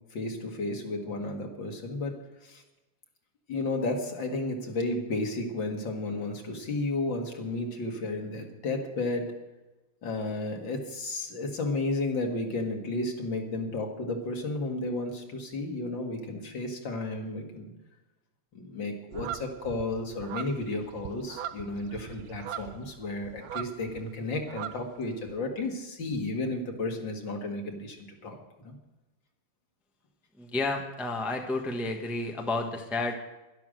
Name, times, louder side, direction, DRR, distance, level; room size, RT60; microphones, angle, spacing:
voice 1, 0.1-2.1 2.4-2.6 3.5-9.3 10.0-17.7 18.5-28.7, left 2 dB, 60° left, 2 dB, 2.5 m, -33 dB
sound 1, 19.1-24.1 24.3-25.3, right 10 dB, 75° right, 1.5 m, -40 dB
voice 2, 30.4-33.1, left 2 dB, ahead, 3 dB, 0.8 m, -31 dB
12.0 x 12.0 x 6.3 m, 1.0 s
omnidirectional pair, 2.4 m